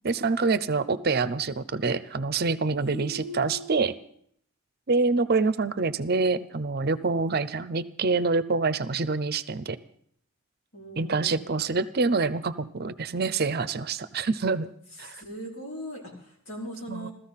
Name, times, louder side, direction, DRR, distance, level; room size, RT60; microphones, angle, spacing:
voice 1, 0.0-3.9 4.9-9.8 11.0-14.7 15.0-15.2 16.9-17.1, right 4 dB, 45° right, 15 dB, 0.6 m, -26 dB
voice 2, 2.7-3.9 10.7-11.4 15.0-17.1, equal, 65° left, -2 dB, 5.0 m, -39 dB
15.5 x 14.0 x 5.7 m, 0.64 s
head